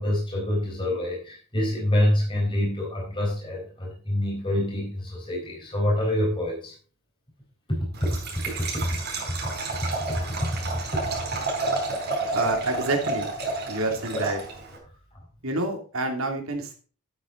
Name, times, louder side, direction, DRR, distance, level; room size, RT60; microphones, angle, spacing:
voice 1, 0.0-6.7 8.0-8.1 8.7-8.9 10.1-10.5 10.9-11.0, left 1 dB, 25° left, -2 dB, 4.8 m, -26 dB
Liquid, 7.9-14.8, right 3 dB, 50° right, 4.4 m, -30 dB
voice 2, 12.3-13.3 13.7-14.4 15.4-16.7, right 2 dB, 65° right, 3 dB, 2.7 m, -27 dB
11.5 x 8.8 x 3.9 m, 0.38 s
head